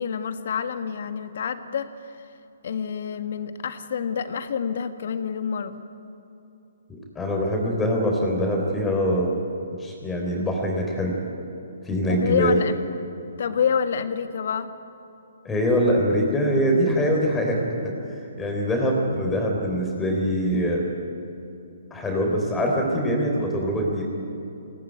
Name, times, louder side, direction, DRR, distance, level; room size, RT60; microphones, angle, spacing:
voice 1, 0.0-2.3 2.6-5.8 12.1-12.8 13.4-14.7, left 7 dB, 60° left, 9 dB, 1.6 m, -27 dB
voice 2, 7.2-9.3 9.8-11.1 11.9-12.6 15.4-17.9 18.4-20.8 21.9-24.0, equal, 10° left, 0 dB, 3.8 m, -23 dB
20.5 x 18.5 x 9.4 m, 2.8 s
hypercardioid pair, 150°, 0 cm